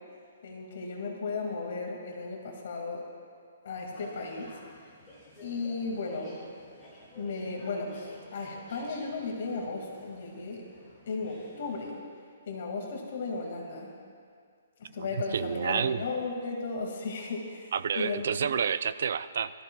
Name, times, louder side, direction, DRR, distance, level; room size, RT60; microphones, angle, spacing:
voice 1, 0.4-3.0 3.6-4.5 5.4-6.4 7.2-10.7 11.1-12.0 12.5-13.9 14.8-18.2, left 3 dB, 50° left, 0 dB, 2.0 m, -35 dB
sound 1, 3.7-11.9, equal, 10° left, 3.6 m, -52 dB
voice 2, 15.0-16.0 17.7-19.5, right 7 dB, 55° right, 14 dB, 0.4 m, -29 dB
22.5 x 14.0 x 2.3 m, 2.2 s
hypercardioid pair, 170°, 0 cm